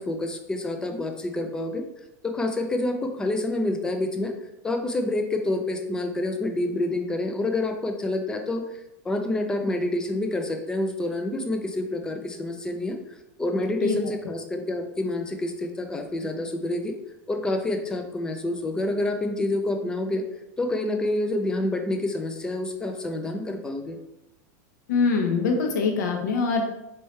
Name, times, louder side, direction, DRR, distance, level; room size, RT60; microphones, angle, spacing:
voice 1, 0.0-1.8 2.2-4.3 4.6-8.8 9.0-17.0 17.3-20.2 20.6-24.0, left 2 dB, 10° left, 5 dB, 0.3 m, -28 dB
voice 2, 24.9-26.6, left 4 dB, 85° left, 3 dB, 0.8 m, -23 dB
4.4 x 3.1 x 3.1 m, 0.88 s
supercardioid pair, 150°, 9 cm